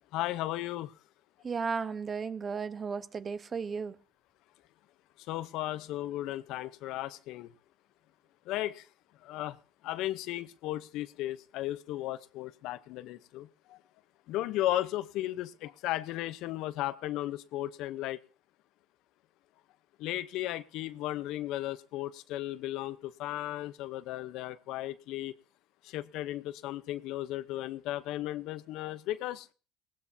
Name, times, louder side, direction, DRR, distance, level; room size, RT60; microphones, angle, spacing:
voice 1, 0.1-0.9 5.2-7.5 8.5-8.9 9.2-9.6 9.8-13.8 14.3-18.2 20.0-25.3 25.8-29.5, left 14 dB, 70° left, 15 dB, 0.8 m, -35 dB
voice 2, 1.4-4.0, right 5 dB, 30° right, 14 dB, 0.9 m, -34 dB
20.5 x 17.5 x 2.7 m, 0.36 s
supercardioid pair, 105°, 0 cm